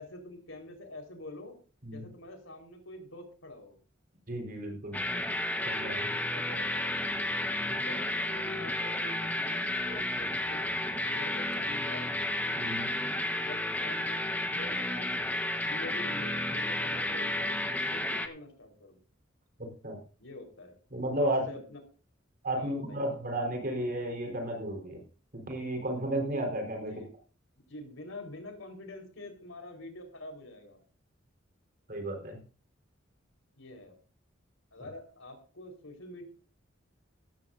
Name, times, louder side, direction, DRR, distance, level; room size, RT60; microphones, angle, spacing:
voice 1, 0.0-1.6 1.9-3.8 5.9-6.9 7.7-9.6 9.9-10.7 11.0-12.1 13.3-19.0 20.2-20.7 21.2-21.8 22.5-23.1 26.9-27.1 27.7-30.8 33.6-34.0 34.7-36.3, left 2 dB, 85° left, 3 dB, 4.4 m, -46 dB
voice 2, 4.3-5.0 5.6-6.1 12.6-13.0 19.8-20.0 20.9-21.5 22.4-25.0 25.3-27.0 31.9-32.4, right 1 dB, 50° right, 2 dB, 4.1 m, -33 dB
Thrashy Guitar Riff, 4.9-18.3, left 1 dB, 10° left, 1.2 m, -32 dB
16.5 x 14.5 x 2.7 m, 0.37 s
head